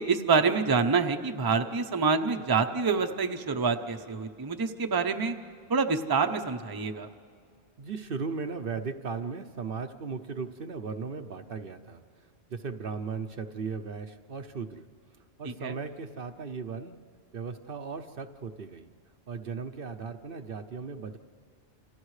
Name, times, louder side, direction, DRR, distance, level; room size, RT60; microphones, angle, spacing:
voice 1, 0.0-5.3 5.7-7.1 15.4-15.7, right 5 dB, 25° right, 6 dB, 0.7 m, -27 dB
voice 2, 7.8-14.9 15.4-17.0 17.3-18.9 19.3-21.2, right 5 dB, 55° right, 7 dB, 0.9 m, -37 dB
29.0 x 28.0 x 3.2 m, 2.2 s
omnidirectional pair, 1.2 m